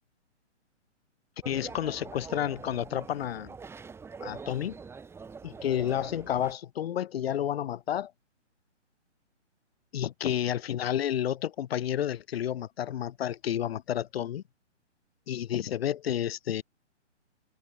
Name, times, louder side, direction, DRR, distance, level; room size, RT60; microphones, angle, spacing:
voice 1, 1.4-3.5 4.2-4.8 5.4-8.1 9.9-14.4 15.3-16.6, left 10 dB, 55° left, 0.7 m, -30 dB
sound 1, 1.4-6.5, right 5 dB, 5° right, 3.6 m, -44 dB
hypercardioid pair, 155°, 36 cm